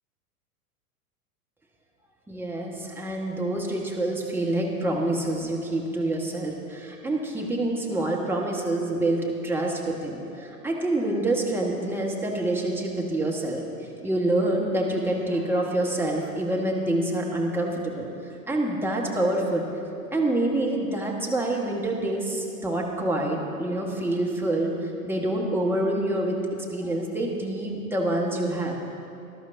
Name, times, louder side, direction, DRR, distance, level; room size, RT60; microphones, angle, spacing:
voice 1, 2.3-19.7 20.1-26.4 26.7-28.8, right 1 dB, 5° right, -2 dB, 1.6 m, -27 dB
19.5 x 11.5 x 2.8 m, 2.7 s
figure-of-eight pair, 95°, 45 cm